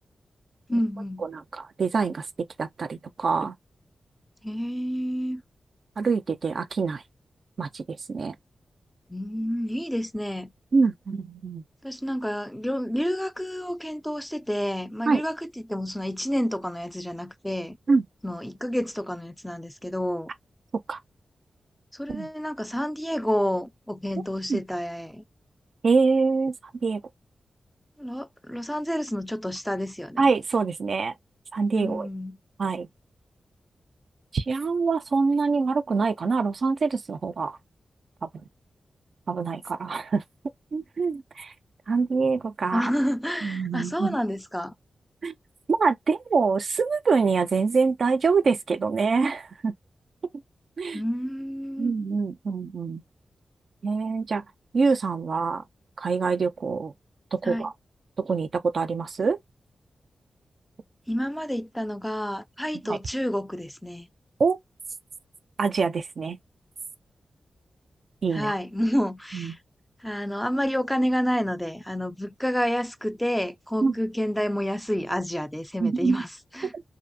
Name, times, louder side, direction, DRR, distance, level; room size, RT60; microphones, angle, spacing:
voice 1, 0.7-1.3 4.4-5.4 9.1-10.5 11.8-15.4 15.6-17.8 18.2-20.3 21.9-25.2 28.0-30.3 31.7-32.4 42.7-44.7 50.9-51.9 57.4-57.7 61.1-64.1 68.3-69.6 70.0-76.3 76.5-76.7, equal, 5° left, 0.4 m, -29 dB
voice 2, 1.2-2.3 2.6-3.5 6.0-7.0 7.6-8.4 10.7-11.6 15.1-15.2 17.9-18.1 20.9-21.0 22.1-22.3 24.5-24.6 25.8-26.5 26.8-27.0 30.2-31.1 31.5-32.1 32.6-32.9 34.3-37.6 38.2-38.3 39.3-40.2 40.7-41.5 41.9-42.9 43.4-44.2 45.2-45.3 45.7-49.7 50.8-51.0 51.8-53.0 53.8-54.4 54.7-55.6 56.0-56.9 57.3-57.7 58.2-59.4 62.9-63.0 64.4-64.6 65.6-66.4 68.2-68.5 69.3-69.5 73.8-73.9 75.8-76.2 76.7-76.8, right 4 dB, 65° right, 0.4 m, -25 dB
2.6 x 2.4 x 2.6 m
cardioid pair, 60°, 0 cm